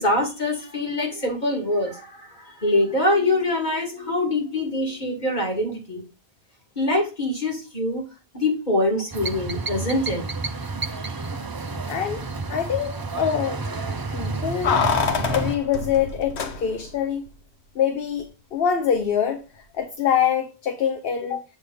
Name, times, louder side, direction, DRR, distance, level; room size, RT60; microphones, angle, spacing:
voice 1, 0.0-2.0 2.6-6.0 6.8-8.0 8.3-10.2 11.0-11.2, left 1 dB, 45° left, 2.3 m, -24 dB
sound 1, 9.1-15.6, right 3 dB, 30° right, 0.4 m, -30 dB
voice 2, 11.9-12.2 12.5-13.6 14.1-14.8 15.2-17.3 17.8-19.4 19.7-21.4, left 8 dB, 65° left, 1.0 m, -24 dB
Keys jangling, 14.6-17.0 17.3-17.4, left 6 dB, 90° left, 1.2 m, -25 dB
8.4 x 3.4 x 5.5 m
omnidirectional pair, 1.1 m